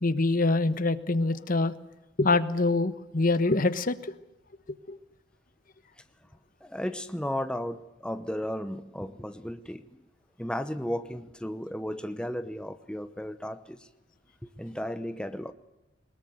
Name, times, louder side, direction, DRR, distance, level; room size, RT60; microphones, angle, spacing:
voice 1, 0.0-1.7 2.2-4.1 4.7-5.0, left 3 dB, 45° left, 13 dB, 1.1 m, -25 dB
voice 2, 6.6-9.9 10.4-13.9 14.6-15.5, equal, 5° left, 9 dB, 0.9 m, -34 dB
22.0 x 20.5 x 7.9 m, 0.93 s
head